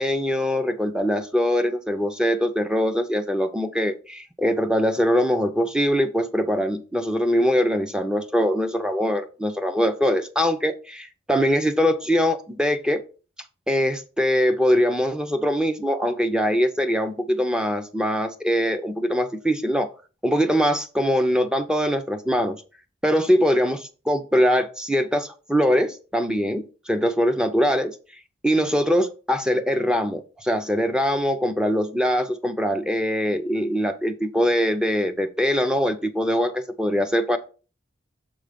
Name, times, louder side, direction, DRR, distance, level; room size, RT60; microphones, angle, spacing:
voice 1, 0.0-13.0 13.7-19.9 20.2-22.6 23.0-23.8 24.1-28.0 28.4-37.4, equal, 5° right, 8 dB, 0.6 m, -22 dB
7.4 x 3.8 x 5.1 m, 0.35 s
head